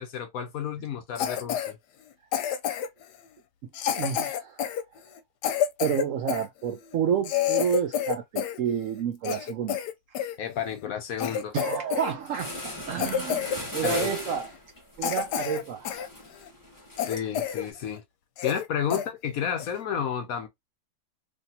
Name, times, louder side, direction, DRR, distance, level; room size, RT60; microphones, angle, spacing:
voice 1, 0.0-1.8 10.4-11.6 13.8-14.1 17.1-18.0 18.4-20.5, left 8 dB, 65° left, 1.0 m, -31 dB
Cough, 1.2-1.7 2.3-3.0 3.7-6.5 6.9-7.0 7.2-8.6 8.9-10.3 10.8-10.9 11.2-12.1 12.4-12.6 13.0-13.6 13.8-14.0 14.5-14.6 15.0-16.1 16.5-16.6 17.0-17.7 18.0-18.1 18.4-18.7 18.9-19.1 19.6-19.8, left 9 dB, 90° left, 1.2 m, -29 dB
voice 2, 3.9-4.6 5.8-9.8 11.5-12.6 12.9-14.5 15.0-15.9 18.9-19.0, right 8 dB, 70° right, 0.8 m, -29 dB
sound 1, 11.9-12.0 12.3-17.7, left 1 dB, 15° left, 0.8 m, -39 dB
3.1 x 2.7 x 2.7 m
omnidirectional pair, 1.8 m